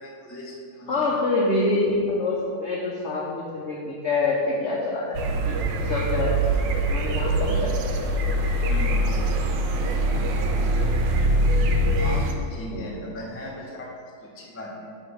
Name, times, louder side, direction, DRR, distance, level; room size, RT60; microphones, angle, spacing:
voice 1, 0.0-1.0 8.7-9.1 9.9-10.0 12.0-13.9 14.2-14.9, left 1 dB, 20° left, -4 dB, 0.4 m, -37 dB
voice 2, 0.9-8.1 12.7-12.9, left 2 dB, 70° left, -4 dB, 0.6 m, -26 dB
sound 1, 5.1-12.3, right 1 dB, 75° right, 1.2 m, -23 dB
6.8 x 3.3 x 5.3 m, 2.3 s
omnidirectional pair, 2.0 m